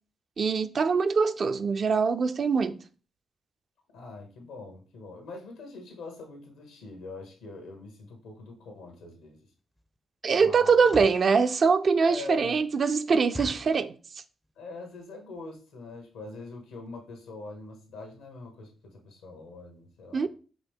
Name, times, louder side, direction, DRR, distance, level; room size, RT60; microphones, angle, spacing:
voice 1, 0.4-2.8 10.2-13.9 20.1-20.3, right 5 dB, 55° right, 0.4 m, -23 dB
voice 2, 3.9-9.4 10.3-10.8 12.1-12.6 14.6-20.3, left 3 dB, 90° left, 1.1 m, -43 dB
sound 1, 9.1-9.3 9.8-10.0 10.7-11.3 11.9-12.0 12.3-12.4 12.7-12.8 13.3-13.9 14.4-14.7 15.0-15.1 15.3-15.6 16.1-16.2 16.4-16.6 17.0-17.1 17.3-17.4, left 1 dB, 10° left, 0.4 m, -41 dB
5.1 x 2.7 x 3.6 m
supercardioid pair, 50°, 0 cm